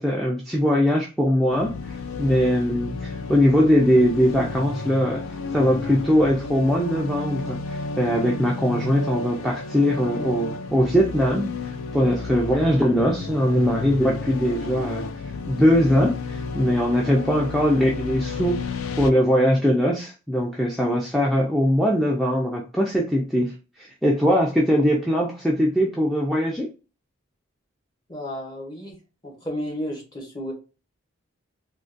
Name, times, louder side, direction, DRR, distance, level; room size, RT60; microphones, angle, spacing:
voice 1, 0.0-5.2 5.5-15.0 15.5-26.7, equal, ahead, -3 dB, 0.3 m, -21 dB
sound 1, 1.5-19.1, left 4 dB, 80° left, 0.4 m, -32 dB
voice 2, 28.1-30.5, equal, 20° left, -1 dB, 0.9 m, -33 dB
3.7 x 2.2 x 2.4 m, 0.32 s
head